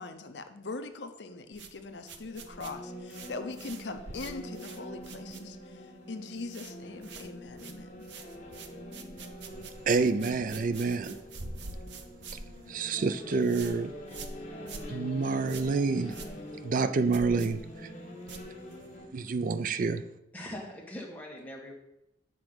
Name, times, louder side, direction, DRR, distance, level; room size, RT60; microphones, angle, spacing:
voice 1, 0.0-8.1, left 3 dB, 70° left, 0.7 m, -41 dB
sound 1, 1.5-5.9 6.1-6.7 7.0-19.0, right 3 dB, 75° right, 0.8 m, -46 dB
sound 2, 2.0-19.1, equal, 40° left, 1.7 m, -45 dB
voice 2, 9.9-11.2 12.7-13.9 14.9-16.2 16.6-17.9 19.1-20.0, right 4 dB, 50° right, 0.4 m, -28 dB
voice 3, 20.3-21.7, left 1 dB, 10° left, 1.8 m, -41 dB
8.4 x 4.8 x 6.1 m
head